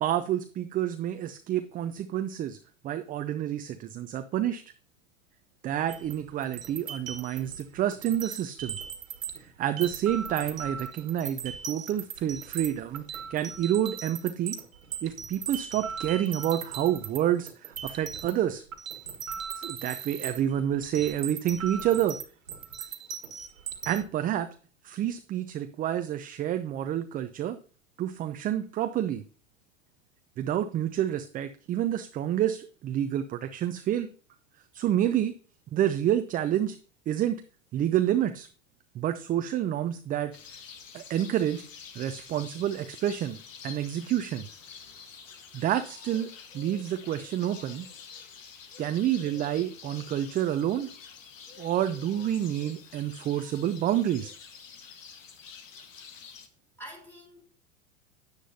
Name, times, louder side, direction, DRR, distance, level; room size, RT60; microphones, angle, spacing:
voice 1, 0.0-2.6 2.8-4.6 5.6-8.8 9.6-14.6 15.0-18.6 19.5-22.2 23.9-24.5 24.8-27.6 28.0-29.2 30.4-34.1 34.7-35.3 35.7-36.8 37.1-37.4 37.7-38.5 38.9-40.3 40.9-41.6 41.9-43.4 43.6-44.5 45.5-47.9 48.8-50.9 51.6-54.3, right 11 dB, 20° right, 0.5 m, -28 dB
sound 1, 5.9-9.5 9.8-17.2 17.5-24.0, right 7 dB, 80° right, 1.5 m, -38 dB
sound 2, 40.3-56.5, left 6 dB, 75° left, 1.6 m, -48 dB
voice 2, 56.8-57.5, equal, 5° left, 3.9 m, -47 dB
9.9 x 9.7 x 2.8 m
hypercardioid pair, 95°, 39 cm